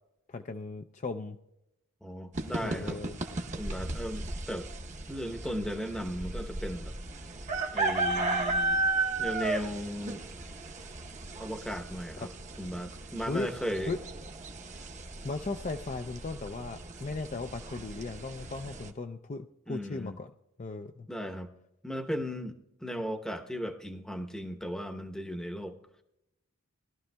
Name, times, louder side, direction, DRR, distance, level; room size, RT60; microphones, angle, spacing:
voice 1, 0.3-1.4 2.6-3.1 12.2-12.3 13.3-13.5 13.9-14.0 15.2-20.3 20.6-21.1, left 3 dB, 35° left, 6 dB, 0.4 m, -37 dB
voice 2, 2.0-3.0 3.6-4.7 5.1-6.9 7.7-8.8 9.2-10.2 11.4-12.3 12.6-14.0 19.7-20.2 21.1-21.5 21.8-22.6 22.8-25.8, equal, 5° left, 4 dB, 0.8 m, -36 dB
sound 1, 2.3-18.9, right 2 dB, 35° right, 0.8 m, -35 dB
20.5 x 12.5 x 2.2 m, 0.87 s
head